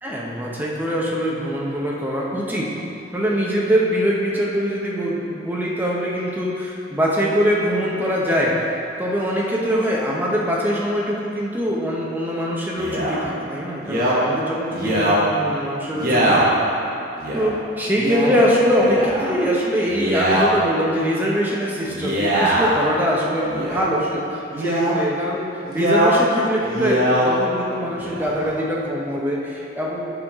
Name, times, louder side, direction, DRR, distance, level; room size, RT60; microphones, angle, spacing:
voice 1, 0.0-2.7 3.1-8.7 9.0-16.6 17.3-30.0, equal, 10° right, -4 dB, 0.9 m, -23 dB
Male speech man speaking, 12.8-13.2 13.8-14.2 14.7-15.2 15.9-16.5 17.2-17.5 17.9-18.3 18.8-19.3 19.8-20.5 21.8-22.8 23.4-23.9 24.5-25.0 25.6-26.1 26.6-27.3 27.9-28.5, right 1 dB, 50° right, 1.3 m, -21 dB
8.2 x 5.8 x 3.6 m, 3.0 s
head